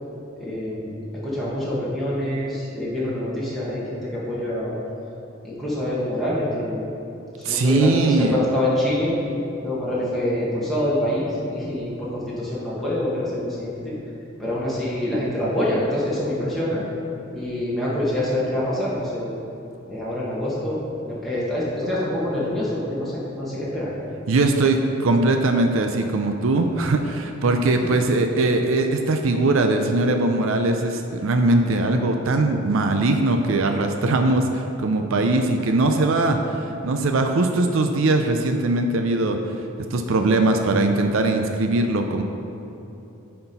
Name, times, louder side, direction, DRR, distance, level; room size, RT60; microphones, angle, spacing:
voice 1, 0.4-0.9 1.2-4.8 5.4-6.9 7.4-9.2 9.6-14.0 14.4-16.8 17.3-19.3 19.9-23.9, left 1 dB, ahead, -9 dB, 1.5 m, -26 dB
voice 2, 7.4-8.4 24.3-24.8 25.0-39.4 39.9-42.2, right 2 dB, 70° right, 5 dB, 0.5 m, -20 dB
9.7 x 4.4 x 5.4 m, 2.9 s
head